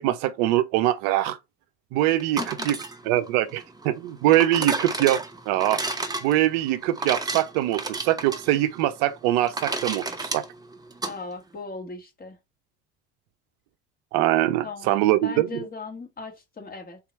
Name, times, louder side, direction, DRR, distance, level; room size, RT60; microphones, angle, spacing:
voice 1, 0.0-1.4 1.9-2.4 2.7-2.8 3.1-5.8 6.2-10.4 14.1-15.5, right 14 dB, 60° right, 0.6 m, -23 dB
sound 1, 2.2-11.1, right 3 dB, 10° right, 0.8 m, -32 dB
voice 2, 2.3-2.7 4.6-4.7 11.0-12.4 14.6-17.0, left 3 dB, 25° left, 1.5 m, -38 dB
3.9 x 3.0 x 4.1 m
hypercardioid pair, 65°, 34 cm